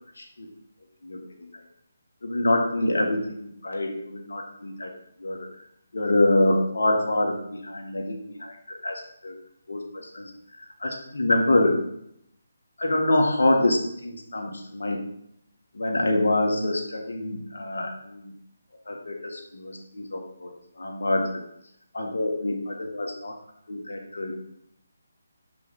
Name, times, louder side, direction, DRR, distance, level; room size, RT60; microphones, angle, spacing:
voice 1, 0.2-0.5 1.0-1.5 2.2-4.9 5.2-5.5 5.9-9.3 9.7-10.3 10.6-11.8 12.8-15.0 15.7-18.3 18.9-21.4 21.9-23.3 23.7-24.4, left 1 dB, 75° left, 2 dB, 1.5 m, -26 dB
6.1 x 5.6 x 4.1 m, 0.73 s
figure-of-eight pair, 155°, 0 cm